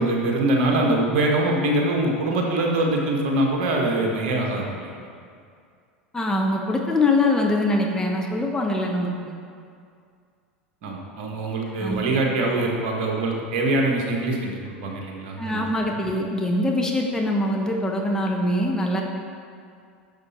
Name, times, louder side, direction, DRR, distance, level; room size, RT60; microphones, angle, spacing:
voice 1, 0.0-4.9 10.8-16.0, right 2 dB, 50° right, 0 dB, 1.6 m, -23 dB
voice 2, 6.1-9.3 11.8-12.0 15.4-19.0, left 1 dB, 10° left, 0 dB, 1.0 m, -23 dB
10.5 x 6.8 x 4.3 m, 2.2 s
figure-of-eight pair, 80°, 6 cm